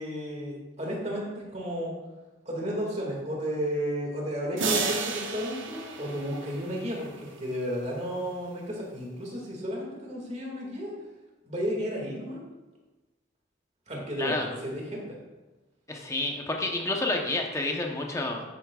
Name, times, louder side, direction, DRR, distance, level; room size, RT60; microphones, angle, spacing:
voice 1, 0.0-1.9 2.5-10.9 11.4-12.4 13.9-15.2, equal, 35° right, -2 dB, 2.1 m, -33 dB
sound 1, 4.6-7.1, right 5 dB, 90° right, 0.9 m, -32 dB
voice 2, 14.2-14.5 15.9-18.4, left 2 dB, 15° left, 1 dB, 0.9 m, -29 dB
11.0 x 8.5 x 2.4 m, 1.1 s
head